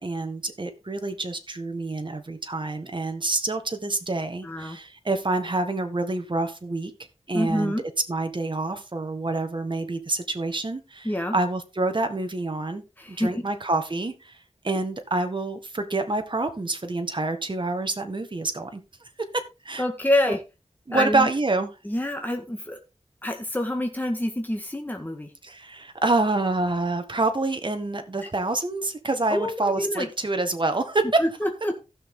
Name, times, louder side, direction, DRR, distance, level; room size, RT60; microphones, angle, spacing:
voice 1, 0.0-6.9 7.3-7.7 8.1-14.4 14.6-18.8 19.6-19.8 20.9-21.7 25.4-31.2, right 2 dB, 40° right, 6 dB, 1.7 m, -27 dB
voice 2, 4.4-4.8 7.3-7.8 11.0-11.4 13.0-13.4 19.8-20.4 20.9-21.3 21.9-22.8 23.2-25.3 29.3-30.1 31.2-31.7, left 1 dB, 15° left, 4 dB, 1.8 m, -27 dB
15.0 x 6.5 x 3.9 m, 0.29 s
wide cardioid pair, 75°, 12 cm